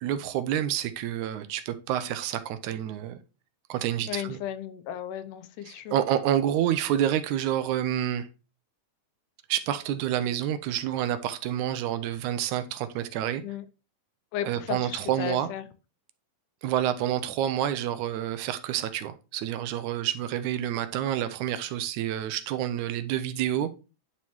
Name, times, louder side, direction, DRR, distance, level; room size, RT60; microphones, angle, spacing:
voice 1, 0.0-3.2 3.7-4.4 5.7-8.3 9.5-13.4 14.5-15.5 16.6-23.8, right 11 dB, 80° right, 2.0 m, -28 dB
voice 2, 4.1-5.9 13.4-13.6 14.3-15.6, left 10 dB, 90° left, 2.2 m, -35 dB
10.5 x 4.2 x 3.0 m
omnidirectional pair, 3.5 m